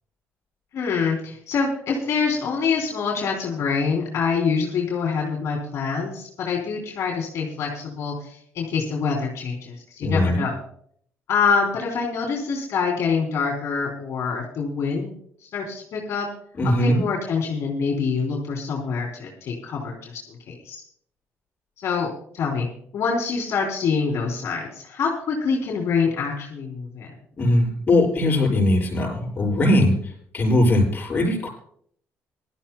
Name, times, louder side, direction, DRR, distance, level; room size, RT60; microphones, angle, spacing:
voice 1, 0.7-10.6 11.3-15.1 15.5-16.3 16.8-20.8 21.8-22.1 22.3-22.7 22.9-27.1, left 5 dB, 65° left, 0 dB, 3.1 m, -25 dB
voice 2, 10.0-10.4 16.6-17.0 27.4-31.5, left 1 dB, 35° left, -1 dB, 6.3 m, -20 dB
23.0 x 13.0 x 2.2 m, 0.62 s
cardioid pair, 120°, 5 cm